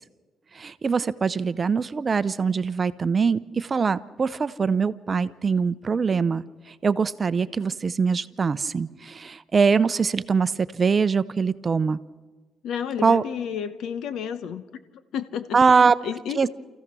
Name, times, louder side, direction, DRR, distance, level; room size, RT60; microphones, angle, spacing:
voice 1, 0.5-6.4 6.8-12.0 13.0-13.2 15.5-15.9 16.4-16.5, right 5 dB, 35° right, 15 dB, 0.7 m, -22 dB
voice 2, 12.6-14.6 15.1-15.8 16.0-16.5, left 8 dB, 80° left, 12 dB, 1.1 m, -31 dB
28.5 x 15.0 x 6.2 m, 1.3 s
cardioid pair, 90°, 0 cm